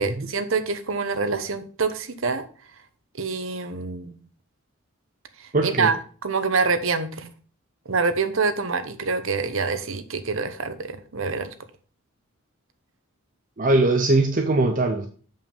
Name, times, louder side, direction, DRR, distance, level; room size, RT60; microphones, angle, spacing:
voice 1, 0.0-2.4 3.2-4.2 5.4-6.0 6.2-7.3 7.9-11.5, right 4 dB, 65° right, 0.9 m, -26 dB
voice 2, 5.5-5.9 13.6-15.1, right 2 dB, 40° right, 0.7 m, -21 dB
7.3 x 5.4 x 5.4 m
head